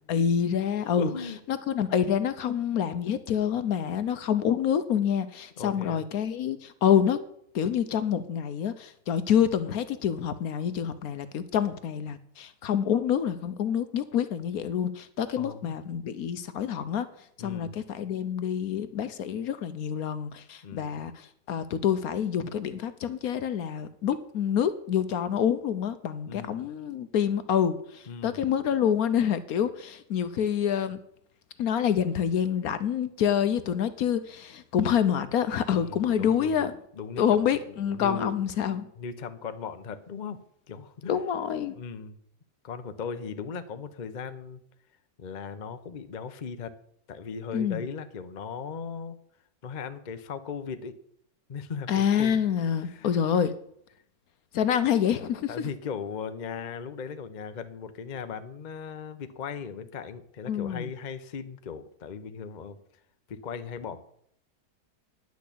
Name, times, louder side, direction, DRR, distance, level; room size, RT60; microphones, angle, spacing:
voice 1, 0.0-1.1 1.5-7.2 7.5-17.1 17.4-31.0 31.6-36.7 37.2-38.9 41.1-41.8 47.5-47.8 51.9-53.5 54.5-55.7 60.5-60.9, left 8 dB, 65° left, 13 dB, 1.1 m, -27 dB
voice 2, 1.0-1.4 5.6-6.0 15.4-15.7 17.4-17.8 20.6-21.0 26.3-26.6 28.1-28.4 35.8-37.4 37.9-38.4 39.0-41.2 41.7-42.2 42.6-44.6 45.2-46.8 47.1-49.2 49.6-50.9 51.5-52.4 52.7-53.1 55.5-62.8 63.3-64.0, left 6 dB, 40° left, 10 dB, 0.7 m, -38 dB
10.5 x 6.3 x 8.4 m, 0.70 s
omnidirectional pair, 1.8 m